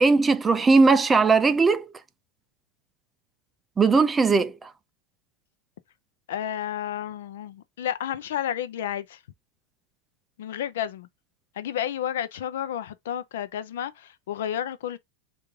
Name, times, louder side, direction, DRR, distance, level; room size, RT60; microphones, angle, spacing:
voice 1, 0.0-1.9 3.8-4.7, right 4 dB, 15° right, 0.3 m, -19 dB
voice 2, 6.3-9.2 10.4-11.1 11.5-15.0, left 10 dB, 80° left, 0.5 m, -31 dB
3.5 x 2.5 x 3.1 m
supercardioid pair, 140°, 0 cm